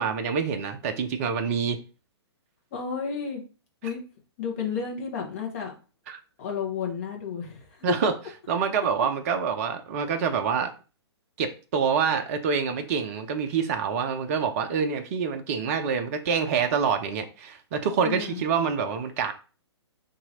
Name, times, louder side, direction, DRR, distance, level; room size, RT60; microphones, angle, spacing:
voice 1, 0.0-1.8 6.1-6.2 7.8-8.1 8.5-10.7 11.4-19.3, right 6 dB, 35° right, 0.5 m, -26 dB
voice 2, 2.7-3.4 3.8-4.0 4.4-5.7 6.4-7.8 18.0-18.4, left 6 dB, 35° left, 1.2 m, -32 dB
2.8 x 2.6 x 4.1 m
figure-of-eight pair, 120°, 14 cm